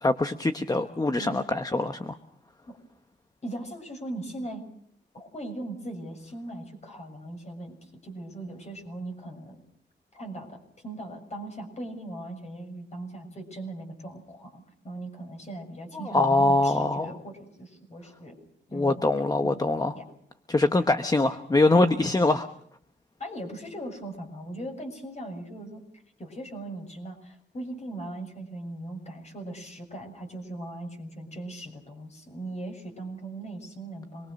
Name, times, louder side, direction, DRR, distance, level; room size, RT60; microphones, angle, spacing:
voice 1, 0.0-2.2 15.9-17.1 18.7-19.9 20.5-22.5, left 2 dB, 20° left, 8 dB, 1.0 m, -23 dB
voice 2, 3.4-4.6 5.1-9.6 10.1-18.4 18.7-19.0 19.4-19.5 19.9-20.1 23.2-25.8 26.2-34.3, right 1 dB, 35° left, 4 dB, 6.7 m, -39 dB
27.0 x 22.0 x 6.5 m, 0.66 s
wide cardioid pair, 130°, 19 cm